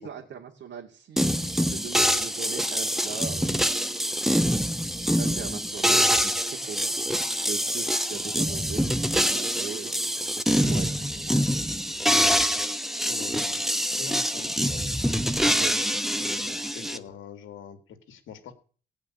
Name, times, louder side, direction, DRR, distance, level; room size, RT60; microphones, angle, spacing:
voice 1, 0.0-4.2 5.2-7.1 7.5-11.4 15.5-15.7, right 7 dB, 65° right, 0 dB, 2.4 m, -40 dB
sound 1, 1.2-17.0, equal, ahead, 1.1 m, -25 dB
voice 2, 13.0-13.6 14.0-14.9 16.2-18.5, left 7 dB, 80° left, 7 dB, 2.6 m, -44 dB
17.0 x 5.7 x 9.8 m, 0.41 s
cardioid pair, 90°, 20 cm